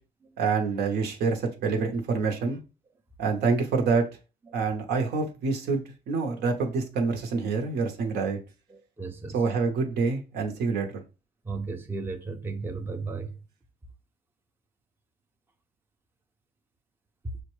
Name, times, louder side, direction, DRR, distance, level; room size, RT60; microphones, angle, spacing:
voice 1, 0.4-2.6 3.2-4.1 4.5-8.4 9.3-11.0, right 4 dB, 70° right, 0.9 m, -27 dB
voice 2, 8.7-9.4 11.4-13.3, right 4 dB, 15° right, 0.5 m, -35 dB
6.1 x 2.2 x 3.0 m
cardioid pair, 110°, 17 cm